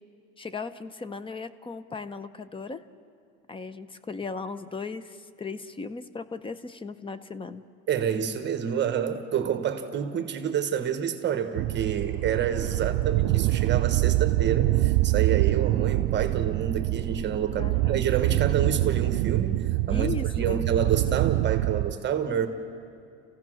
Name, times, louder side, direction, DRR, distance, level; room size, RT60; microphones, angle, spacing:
voice 1, 0.4-2.8 3.5-7.6 17.6-18.1 19.9-20.6, left 4 dB, 20° left, 13 dB, 0.7 m, -37 dB
voice 2, 7.9-22.5, right 8 dB, 35° right, 7 dB, 1.4 m, -28 dB
sound 1, 11.6-21.9, right 18 dB, 70° right, 0.5 m, -25 dB
29.0 x 16.0 x 6.3 m, 2.5 s
cardioid pair, 130°, 30 cm